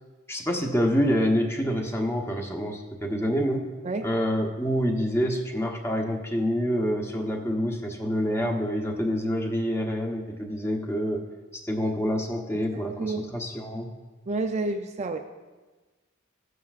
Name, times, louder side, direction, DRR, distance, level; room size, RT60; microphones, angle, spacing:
voice 1, 0.3-3.7 4.0-11.3 11.6-13.9, equal, 15° left, 2 dB, 0.9 m, -27 dB
voice 2, 12.5-13.3 14.3-15.2, right 3 dB, 35° right, 5 dB, 0.4 m, -30 dB
14.0 x 9.4 x 2.4 m, 1.3 s
head